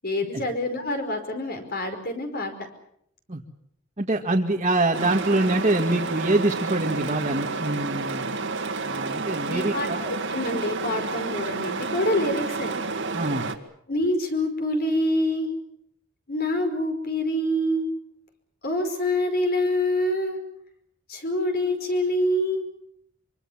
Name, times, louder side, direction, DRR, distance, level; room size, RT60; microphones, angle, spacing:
voice 1, 0.0-2.5 9.5-12.8 13.9-15.5 16.3-17.9 18.6-20.4 21.1-22.7, left 1 dB, 50° left, 6 dB, 5.1 m, -26 dB
voice 2, 4.0-8.3 8.8-10.0 13.1-13.5, right 2 dB, 30° right, -1 dB, 1.8 m, -24 dB
sound 1, 4.9-13.6, right 3 dB, 65° right, 2.1 m, -30 dB
25.5 x 24.5 x 7.3 m, 0.70 s
head